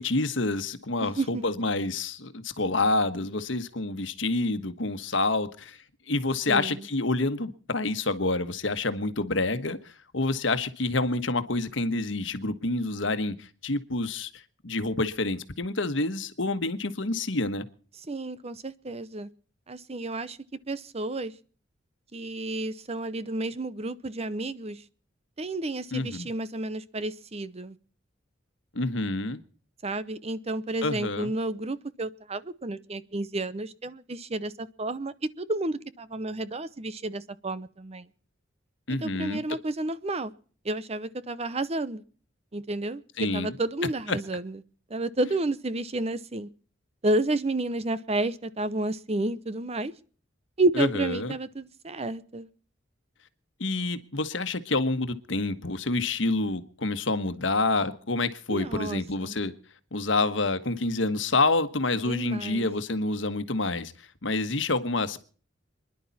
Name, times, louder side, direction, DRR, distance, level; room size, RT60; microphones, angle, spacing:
voice 1, 0.0-5.8 6.1-9.8 10.1-17.6 25.9-26.3 28.7-29.4 30.8-31.3 38.9-39.4 43.2-43.5 44.1-44.2 50.8-51.3 53.6-59.5 59.9-63.9 64.2-65.2, left 2 dB, 70° left, 1.4 m, -28 dB
voice 2, 1.0-1.4 6.5-6.9 18.1-19.3 19.7-20.4 20.7-21.3 22.1-24.8 25.4-27.8 29.8-38.1 39.0-40.3 40.6-42.0 42.5-44.6 44.9-46.5 47.0-49.9 50.6-52.5 58.5-59.4 62.1-62.7, right 2 dB, 35° right, 0.8 m, -31 dB
27.5 x 11.0 x 4.2 m
head